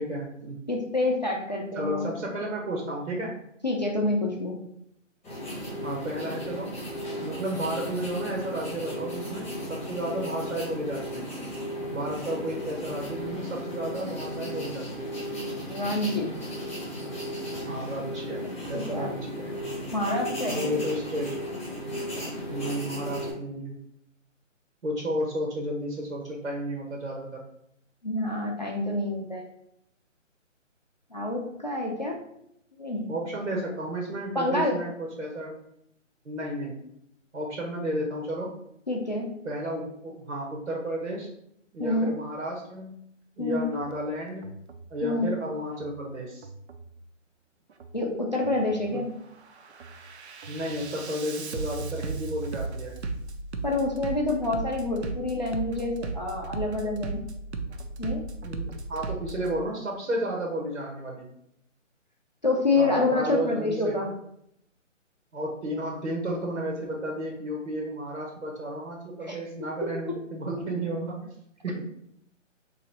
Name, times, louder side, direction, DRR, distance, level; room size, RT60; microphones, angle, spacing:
voice 1, 0.0-0.6 1.7-3.3 5.8-6.8 7.2-11.3 11.9-15.1 17.6-18.4 18.7-19.5 20.5-21.4 22.5-23.8 24.8-27.4 33.1-35.5 36.2-36.8 37.3-38.5 39.4-41.3 41.7-43.1 43.4-44.6 44.9-46.5 48.9-49.0 50.5-52.9 58.4-61.3 62.8-63.9 65.3-71.3 71.6-71.8, right 1 dB, 85° right, -1 dB, 1.1 m, -32 dB
voice 2, 0.7-2.1 3.6-4.6 15.7-16.4 18.7-19.1 19.9-20.8 28.0-29.4 31.1-32.2 32.8-33.2 34.3-34.8 38.9-39.3 41.8-42.1 43.4-43.7 45.0-45.3 47.9-49.1 53.6-57.2 58.0-58.2 62.4-64.1 69.2-69.4, left 2 dB, 35° left, -1 dB, 0.4 m, -27 dB
sound 1, 5.2-23.3, equal, 15° left, 0.9 m, -35 dB
Bass drum, 43.7-44.0 44.4-44.9 45.7-46.0 46.4-46.9 47.7-48.0 48.4-48.9 49.3-59.5, right 3 dB, 60° right, 0.5 m, -36 dB
3.1 x 2.6 x 4.0 m, 0.75 s
hypercardioid pair, 160°, 38 cm